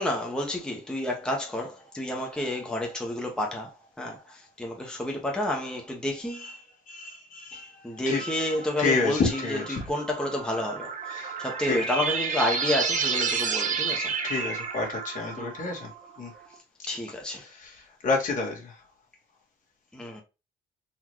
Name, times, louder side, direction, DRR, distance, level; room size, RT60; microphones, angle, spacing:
voice 1, 0.0-6.5 7.5-14.1 15.4-15.6 16.9-17.5 19.9-20.2, left 1 dB, 5° left, 1.0 m, -30 dB
voice 2, 6.9-7.7 8.1-8.2 8.8-9.8 11.1-11.4 11.7-11.8 14.2-15.9 16.2-16.3 17.6-17.7 18.0-18.7, left 4 dB, 50° left, 1.6 m, -29 dB
sound 1, 8.1-16.3, right 5 dB, 45° right, 1.0 m, -31 dB
4.1 x 3.0 x 3.0 m
cardioid pair, 110°, 17 cm